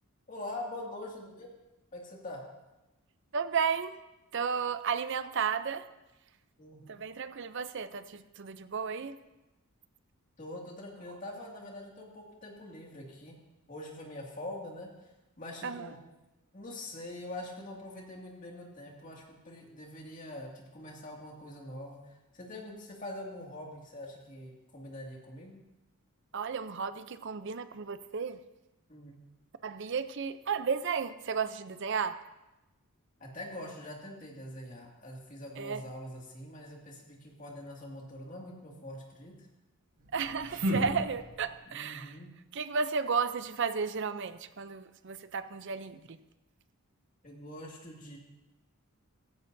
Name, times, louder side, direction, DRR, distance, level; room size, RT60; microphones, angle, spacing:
voice 1, 0.3-1.5 1.9-2.4 6.6-7.1 10.4-13.3 13.7-16.0 16.5-25.6 28.9-29.2 33.2-39.5 41.7-42.3 47.2-48.2, left 1 dB, 35° left, -1 dB, 2.2 m, -44 dB
voice 2, 3.3-4.0 4.3-5.9 6.9-9.2 15.6-15.9 26.3-28.4 29.6-32.2 35.6-35.8 40.1-42.2 42.5-46.2, right 6 dB, 55° right, 12 dB, 0.6 m, -33 dB
sound 1, 40.0-41.7, right 1 dB, 75° right, 2.2 m, -34 dB
16.0 x 15.5 x 2.7 m, 1.0 s
head